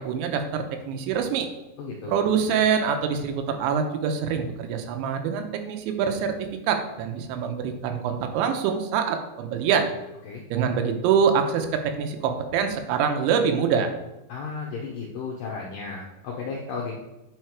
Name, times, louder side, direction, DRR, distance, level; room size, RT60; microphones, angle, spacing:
voice 1, 0.0-1.5 2.1-9.9 10.5-13.9, right 7 dB, 85° right, 6 dB, 3.2 m, -25 dB
voice 2, 1.8-2.2 10.3-10.4 14.3-17.0, left 4 dB, 80° left, -2 dB, 1.9 m, -34 dB
9.1 x 5.7 x 4.7 m, 0.98 s
omnidirectional pair, 5.3 m